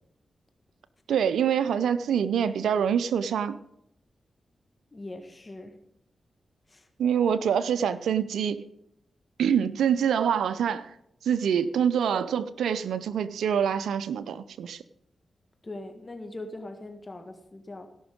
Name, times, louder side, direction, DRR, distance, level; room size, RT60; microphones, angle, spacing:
voice 1, 1.1-3.6 7.0-8.6 9.4-10.9 11.2-14.8, right 8 dB, 90° right, 14 dB, 0.5 m, -25 dB
voice 2, 4.9-5.7 6.7-6.9 15.6-17.9, left 2 dB, 35° left, 6 dB, 1.7 m, -41 dB
16.5 x 6.1 x 5.1 m, 0.78 s
supercardioid pair, 40°, 0 cm